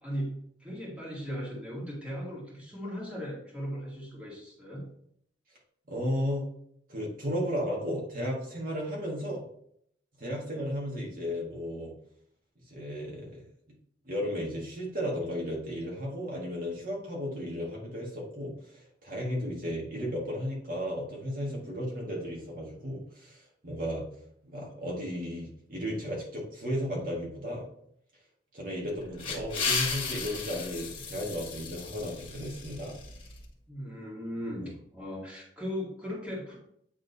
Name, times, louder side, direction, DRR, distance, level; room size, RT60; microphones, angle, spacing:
voice 1, 0.0-4.9 33.7-36.6, equal, 5° right, -5 dB, 2.2 m, -38 dB
voice 2, 5.9-6.4 6.9-9.4 10.2-11.9 12.7-13.4 14.0-24.0 24.4-27.6 28.5-33.0 34.6-34.7, equal, 45° right, -3 dB, 1.7 m, -34 dB
sound 1, 28.9-33.4, left 5 dB, 25° left, 1.6 m, -35 dB
8.9 x 3.7 x 4.0 m, 0.68 s
head